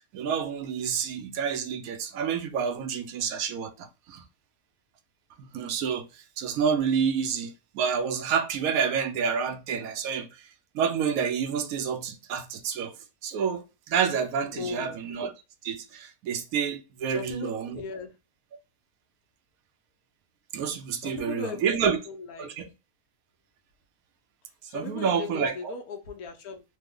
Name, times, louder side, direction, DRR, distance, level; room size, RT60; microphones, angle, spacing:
voice 1, 0.1-4.2 5.5-6.0 6.4-10.3 10.7-12.9 13.2-15.3 15.6-17.8 20.5-22.0 22.4-22.7 24.7-25.7, right 7 dB, 75° right, 1.0 m, -28 dB
voice 2, 14.5-15.0 17.1-18.1 21.0-22.5 24.7-26.6, left 5 dB, 75° left, 1.2 m, -38 dB
3.2 x 2.0 x 3.5 m
omnidirectional pair, 1.6 m